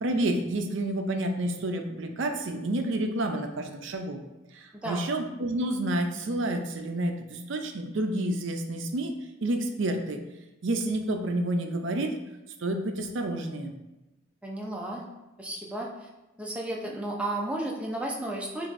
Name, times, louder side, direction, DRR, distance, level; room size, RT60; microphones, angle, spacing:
voice 1, 0.0-4.2 4.5-9.1 9.4-10.2 10.6-12.1 12.6-13.7, right 1 dB, 65° right, 5 dB, 0.5 m, -29 dB
voice 2, 14.4-15.0 15.4-16.1 16.4-18.7, right 1 dB, 5° right, -2 dB, 0.5 m, -33 dB
6.9 x 2.6 x 2.6 m, 1.0 s
head